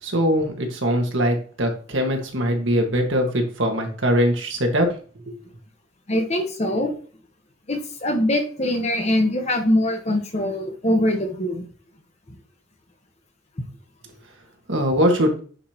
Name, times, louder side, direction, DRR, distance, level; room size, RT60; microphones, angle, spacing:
voice 1, 0.0-5.0 5.3-5.4 14.7-15.4, equal, 65° right, 3 dB, 1.6 m, -22 dB
voice 2, 6.1-6.9 7.7-11.6, left 1 dB, 30° left, 3 dB, 1.1 m, -22 dB
9.6 x 4.9 x 2.9 m, 0.42 s
head